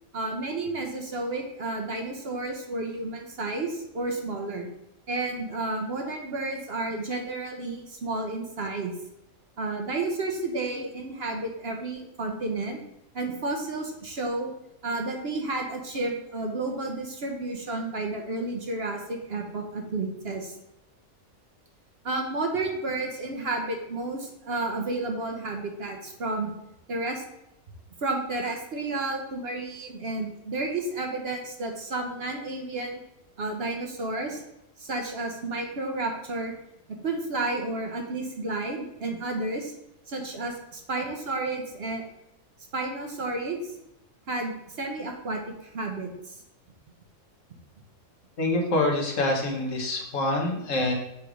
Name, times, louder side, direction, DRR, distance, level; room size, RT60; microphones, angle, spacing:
voice 1, 0.1-4.7 5.1-8.9 9.6-12.8 13.1-14.5 14.8-20.5 22.0-26.5 26.9-27.2 28.0-33.0 33.4-34.4 34.8-36.5 36.9-39.7 40.1-42.0 42.7-43.7 44.3-46.4, right 2 dB, 50° right, 3 dB, 1.0 m, -31 dB
voice 2, 48.4-50.9, left 2 dB, 65° left, 1 dB, 1.5 m, -26 dB
7.0 x 3.2 x 4.9 m, 0.84 s
omnidirectional pair, 1.4 m